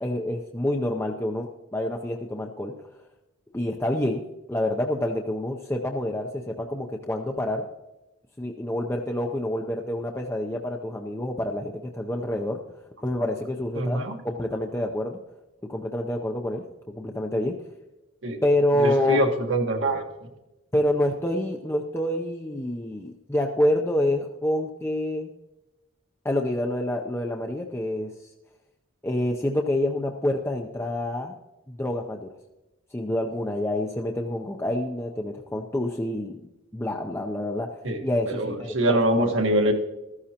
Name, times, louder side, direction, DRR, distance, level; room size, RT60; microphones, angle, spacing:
voice 1, 0.0-2.7 3.5-4.2 4.5-7.7 8.4-12.6 13.0-14.0 14.2-15.2 15.6-17.6 18.4-19.2 20.7-25.3 26.2-28.1 29.0-31.4 31.7-32.3 32.9-36.4 36.7-37.8 38.0-39.3, left 1 dB, 15° left, 2 dB, 0.6 m, -27 dB
voice 2, 13.7-14.2 18.2-18.4 18.8-20.0 37.8-38.0 38.3-39.7, right 1 dB, 75° right, 3 dB, 1.5 m, -24 dB
14.5 x 13.5 x 2.9 m, 1.0 s
head